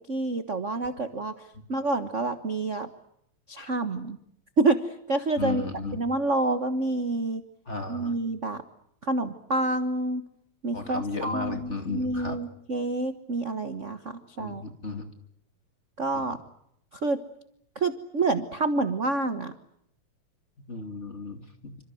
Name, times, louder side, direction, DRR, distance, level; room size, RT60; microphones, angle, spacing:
voice 1, 0.1-1.3 1.7-2.9 3.5-4.2 4.6-5.7 5.9-7.4 7.9-8.6 9.0-10.2 10.6-14.6 16.0-16.4 17.0-17.2 17.7-19.5, right 2 dB, 50° right, 9 dB, 0.9 m, -28 dB
voice 2, 5.4-6.0 7.7-8.1 10.7-12.4 14.4-15.1 16.1-16.2 20.7-21.8, left 3 dB, 25° left, 6 dB, 2.7 m, -34 dB
28.0 x 26.0 x 7.8 m, 0.72 s
omnidirectional pair, 3.3 m